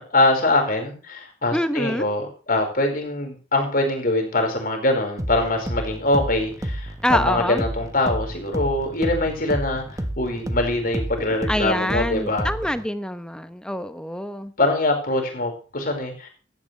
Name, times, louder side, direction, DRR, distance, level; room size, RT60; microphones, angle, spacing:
voice 1, 0.0-12.5 14.6-16.3, left 2 dB, 50° left, 3 dB, 4.9 m, -23 dB
voice 2, 1.5-2.1 7.0-7.6 11.5-14.5, left 1 dB, 5° left, 11 dB, 0.8 m, -25 dB
sound 1, 5.2-12.9, right 1 dB, 20° right, 1.2 m, -30 dB
16.5 x 13.5 x 3.3 m, 0.37 s
head